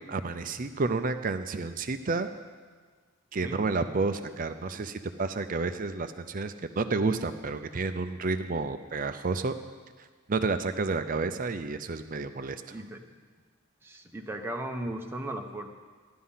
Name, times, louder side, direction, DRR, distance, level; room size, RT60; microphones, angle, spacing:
voice 1, 0.1-2.3 3.3-9.5 10.3-12.7, right 3 dB, 40° right, 9 dB, 0.5 m, -30 dB
voice 2, 12.7-13.2 13.8-15.7, right 1 dB, 10° right, 2 dB, 1.0 m, -37 dB
14.0 x 11.5 x 5.7 m, 1.5 s
head